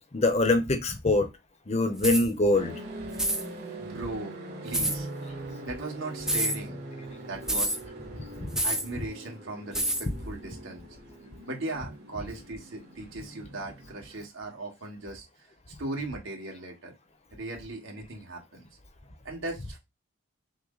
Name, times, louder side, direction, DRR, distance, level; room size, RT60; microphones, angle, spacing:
voice 1, 0.1-1.3 1.7-2.7 8.4-8.5, left 2 dB, 30° left, 0.7 m, -24 dB
sound 1, 2.0-2.3 3.1-3.4 4.7-5.0 6.2-6.6 7.5-7.8 8.5-8.9 9.7-10.1, right 1 dB, 5° right, 0.3 m, -27 dB
sound 2, 2.5-14.2, right 1 dB, 50° right, 1.7 m, -42 dB
voice 2, 3.7-5.2 5.6-6.8 7.2-7.8 8.6-10.8 11.5-15.5 15.8-16.9 17.3-18.7 19.2-19.8, right 2 dB, 65° right, 1.6 m, -38 dB
6.1 x 2.0 x 3.9 m
head